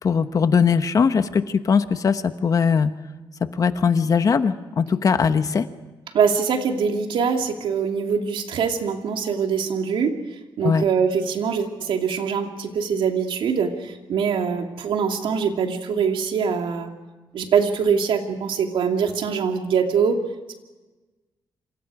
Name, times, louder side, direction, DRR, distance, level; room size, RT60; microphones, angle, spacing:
voice 1, 0.0-2.9 3.4-5.7 10.6-10.8, left 6 dB, 45° left, 10 dB, 1.2 m, -20 dB
voice 2, 6.1-10.2 10.6-16.9 17.3-20.2, right 6 dB, 85° right, 3 dB, 2.7 m, -23 dB
27.5 x 26.5 x 5.0 m, 1.2 s
wide cardioid pair, 140°, 8 cm